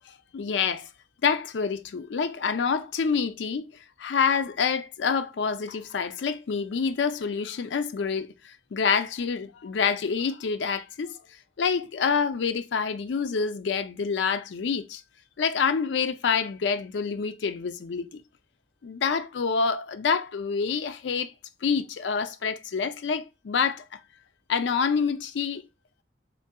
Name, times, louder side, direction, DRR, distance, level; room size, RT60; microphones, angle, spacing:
voice 1, 0.3-0.9 1.2-3.7 4.0-11.1 11.6-15.0 15.4-18.1 18.8-21.3 21.6-23.8 24.5-25.6, left 5 dB, 80° left, 0.4 m, -27 dB
3.7 x 3.5 x 2.2 m
head